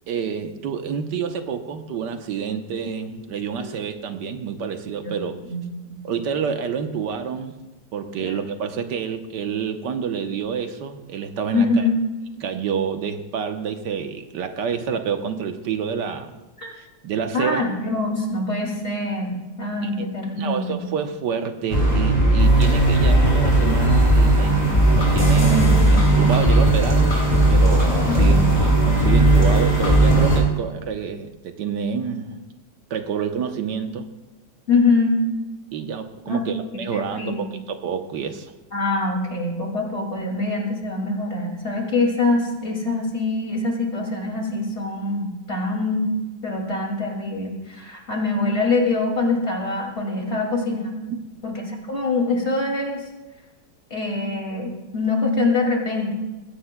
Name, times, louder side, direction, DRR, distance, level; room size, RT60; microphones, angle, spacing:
voice 1, 0.1-5.3 6.0-7.5 7.9-11.9 12.3-16.4 17.0-17.6 20.4-27.2 27.5-32.4 32.9-34.1 35.7-38.5 50.3-50.4 51.1-51.2, right 6 dB, 75° right, 7 dB, 1.5 m, -28 dB
voice 2, 5.4-6.0 8.2-8.4 11.5-12.0 16.6-16.7 17.3-20.8 28.1-28.5 34.7-35.2 36.2-36.4 36.7-37.6 38.7-46.1 46.4-50.8 51.4-53.0 53.9-56.1, left 3 dB, 35° left, 1 dB, 2.7 m, -24 dB
sound 1, 21.7-30.4, right 1 dB, 20° left, 4.3 m, -16 dB
20.0 x 16.0 x 2.2 m, 1.1 s
omnidirectional pair, 1.9 m